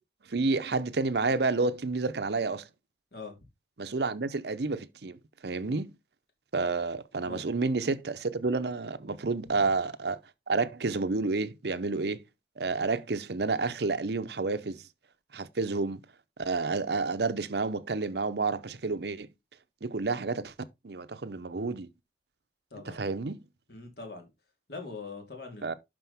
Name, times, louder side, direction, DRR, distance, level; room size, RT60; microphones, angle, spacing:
voice 1, 0.3-2.7 3.8-5.2 5.4-5.9 6.5-10.2 10.5-12.2 12.6-14.8 15.3-16.0 16.4-19.3 19.8-20.5 20.8-21.9 22.8-23.4 25.6-25.7, right 3 dB, 65° right, 0.7 m, -30 dB
voice 2, 23.7-24.3 24.7-25.7, left 3 dB, 60° left, 3.4 m, -42 dB
11.5 x 5.1 x 3.5 m
head